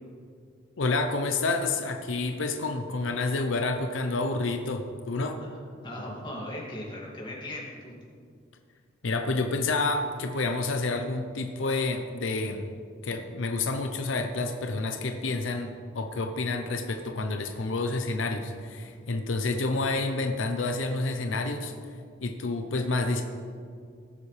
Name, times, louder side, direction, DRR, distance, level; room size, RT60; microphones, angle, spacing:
voice 1, 0.8-5.4 9.0-12.7 13.0-21.7 22.2-23.2, left 3 dB, 85° left, 6 dB, 0.7 m, -29 dB
voice 2, 5.8-7.9, left 1 dB, 25° left, -4 dB, 2.2 m, -38 dB
17.5 x 7.3 x 3.3 m, 2.2 s
head